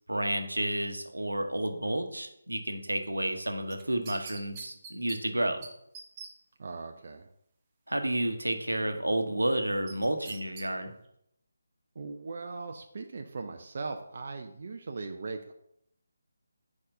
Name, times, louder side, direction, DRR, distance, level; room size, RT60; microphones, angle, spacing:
voice 1, 0.1-5.7 7.9-10.9, right 1 dB, 85° right, 6 dB, 1.0 m, -31 dB
sound 1, 3.7-5.2 5.6-5.7 5.9-6.3 9.9-10.7 11.0-11.1, right 5 dB, 20° right, 0.8 m, -44 dB
voice 2, 6.6-7.3 12.0-15.5, right 4 dB, 50° right, 4 dB, 0.5 m, -39 dB
4.9 x 4.4 x 5.5 m, 0.74 s
figure-of-eight pair, 155°, 0 cm